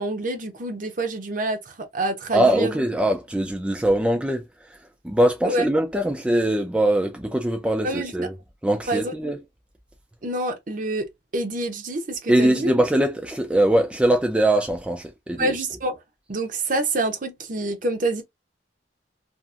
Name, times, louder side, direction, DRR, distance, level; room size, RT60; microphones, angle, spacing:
voice 1, 0.0-2.7 5.4-5.6 7.8-8.1 8.9-9.1 10.2-11.1 11.3-12.7 15.4-16.0 16.3-18.2, right 2 dB, 50° right, 0.7 m, -27 dB
voice 2, 2.3-4.4 5.0-8.3 8.6-9.4 12.3-15.6, right 1 dB, 5° right, 0.4 m, -22 dB
2.8 x 2.5 x 2.3 m
head